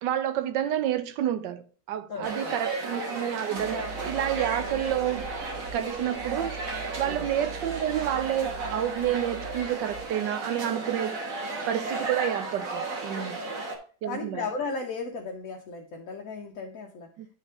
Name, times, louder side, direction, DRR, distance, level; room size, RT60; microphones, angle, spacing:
voice 1, 0.0-5.3 5.6-6.6 7.0-11.2 11.7-13.5 14.0-14.4 17.2-17.3, right 11 dB, 85° right, 1.4 m, -29 dB
voice 2, 2.1-2.6 7.0-7.3 13.4-13.7 14.1-17.1, left 4 dB, 60° left, 1.1 m, -35 dB
sound 1, 2.2-13.8, right 3 dB, 55° right, 1.6 m, -34 dB
sound 2, 3.6-10.0, right 3 dB, 35° right, 1.7 m, -43 dB
9.8 x 4.2 x 3.6 m
omnidirectional pair, 1.9 m